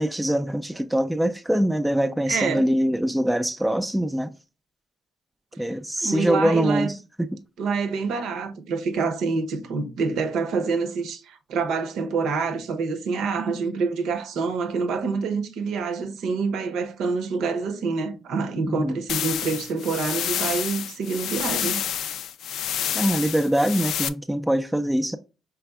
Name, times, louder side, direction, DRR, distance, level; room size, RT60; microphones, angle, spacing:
voice 1, 0.0-4.3 5.6-7.0 18.7-19.0 22.9-25.2, right 1 dB, 5° right, 0.3 m, -23 dB
voice 2, 2.3-2.7 5.5-5.7 6.0-7.0 7.6-21.8, right 4 dB, 80° right, 0.7 m, -27 dB
sound 1, 19.1-24.1, left 10 dB, 80° left, 0.3 m, -29 dB
4.8 x 3.4 x 2.3 m
cardioid pair, 90°, 0 cm